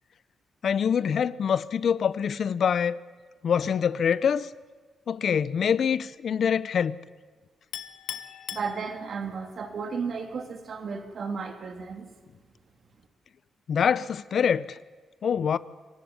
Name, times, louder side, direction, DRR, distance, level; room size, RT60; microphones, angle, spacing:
voice 1, 0.6-3.0 3.4-4.5 5.1-7.0 13.7-14.8 15.2-15.6, left 7 dB, 60° left, 0.7 m, -25 dB
Chink clink, 7.7-9.4, left 10 dB, 80° left, 1.3 m, -39 dB
voice 2, 8.5-12.0, right 5 dB, 55° right, 3.2 m, -34 dB
25.0 x 15.5 x 9.6 m
cardioid pair, 75°, 0 cm